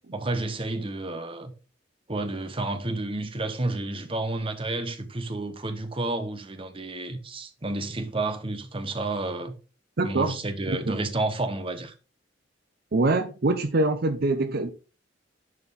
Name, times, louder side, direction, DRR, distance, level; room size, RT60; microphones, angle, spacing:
voice 1, 0.1-1.5 2.1-9.5 10.0-11.9, right 2 dB, 30° right, 0.9 m, -30 dB
voice 2, 10.0-10.4 10.7-11.0 12.9-14.7, right 2 dB, 50° right, 0.6 m, -24 dB
11.0 x 4.4 x 3.6 m
head